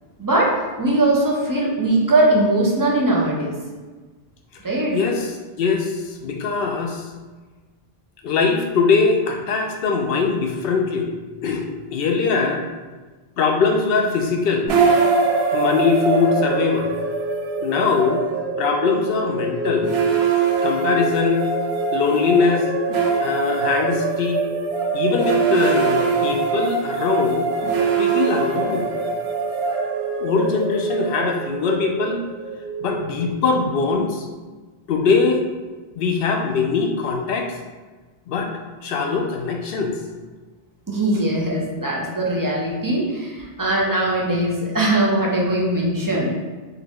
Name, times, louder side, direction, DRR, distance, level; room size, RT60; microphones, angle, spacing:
voice 1, 0.2-3.5 4.6-5.0 40.9-46.3, right 1 dB, 25° right, -3 dB, 0.5 m, -20 dB
voice 2, 4.9-5.3 5.6-7.0 8.2-11.1 11.4-12.7 13.4-14.7 15.5-16.9 17.6-18.2 18.6-19.9 20.6-21.4 21.9-22.7 23.2-24.4 24.9-27.5 28.0-28.8 30.2-32.2 32.8-34.2 34.9-35.4 36.0-37.5 38.3-38.5 38.8-39.9, left 5 dB, 70° left, 3 dB, 0.8 m, -21 dB
sound 1, 14.7-33.8, right 4 dB, 85° right, 0.8 m, -23 dB
3.7 x 2.3 x 3.5 m, 1.3 s
omnidirectional pair, 1.0 m